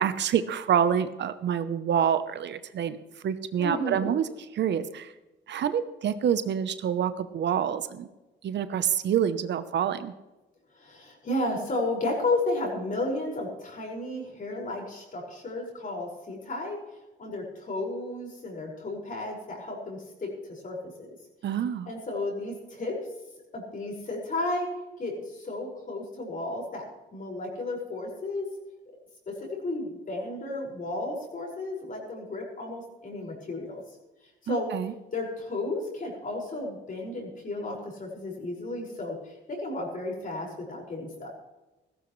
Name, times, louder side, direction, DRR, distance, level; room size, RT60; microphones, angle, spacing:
voice 1, 0.0-3.0 3.2-4.2 4.5-5.1 5.5-8.1 8.4-10.1 21.4-21.9 34.5-34.9, right 8 dB, 60° right, 12 dB, 0.8 m, -27 dB
voice 2, 3.6-4.1 10.8-16.8 17.2-21.2 21.9-23.0 23.5-24.7 25.0-26.8 27.1-28.5 29.3-33.8 34.4-34.7 35.1-41.3, left 2 dB, 40° left, -1 dB, 5.5 m, -33 dB
16.0 x 14.5 x 3.2 m, 1.1 s
cardioid pair, 90°, 20 cm